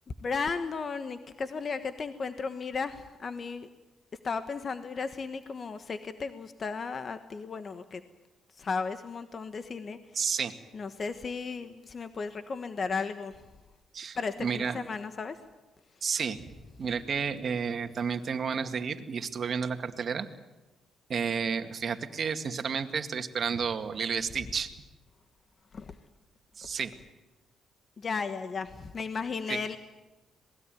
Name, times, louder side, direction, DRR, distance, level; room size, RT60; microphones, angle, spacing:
voice 1, 0.2-3.7 4.2-8.0 8.6-10.0 10.7-13.4 14.1-15.4 25.7-25.9 28.0-29.8, left 5 dB, 40° left, 10 dB, 1.3 m, -35 dB
voice 2, 10.2-10.5 13.9-14.8 16.0-16.4 16.8-20.3 21.1-24.7 26.6-26.9 29.5-29.6, right 6 dB, 50° right, 7 dB, 2.1 m, -31 dB
26.5 x 19.5 x 9.2 m, 1.1 s
cardioid pair, 90°, 0 cm